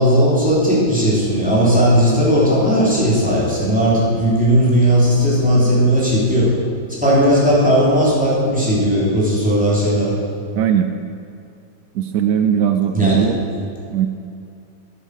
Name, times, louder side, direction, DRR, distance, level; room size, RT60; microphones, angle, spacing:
voice 1, 0.0-6.5 7.0-10.1 12.9-13.3, equal, 5° right, -7 dB, 3.3 m, -16 dB
voice 2, 10.6-11.0 11.9-13.4 13.9-14.1, right 9 dB, 80° right, 8 dB, 0.7 m, -18 dB
9.9 x 9.8 x 6.6 m, 2.5 s
omnidirectional pair, 2.0 m